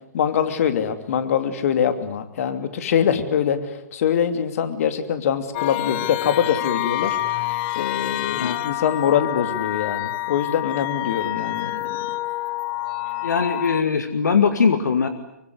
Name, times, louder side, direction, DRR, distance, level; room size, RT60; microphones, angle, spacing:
voice 1, 0.1-7.2 7.5-11.9, left 8 dB, 55° left, 9 dB, 2.9 m, -23 dB
sound 1, 5.5-13.8, left 16 dB, 35° left, 1.1 m, -27 dB
voice 2, 13.2-15.1, left 6 dB, 75° left, 9 dB, 2.2 m, -20 dB
25.0 x 24.0 x 9.6 m, 0.81 s
figure-of-eight pair, 125°, 10 cm